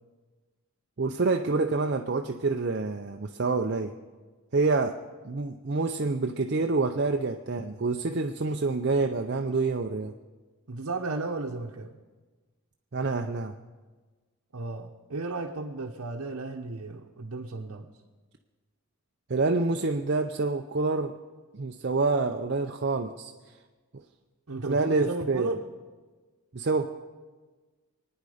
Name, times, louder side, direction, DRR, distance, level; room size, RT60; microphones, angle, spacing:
voice 1, 1.0-3.9 4.5-5.0 5.2-10.1 12.9-13.5 19.3-21.1 21.5-23.3 24.7-25.5 26.5-26.9, right 3 dB, 50° right, 4 dB, 0.6 m, -27 dB
voice 2, 10.7-11.9 14.5-17.9 24.5-25.6, right 3 dB, 75° right, 0 dB, 0.9 m, -34 dB
24.5 x 9.6 x 5.0 m, 1.3 s
head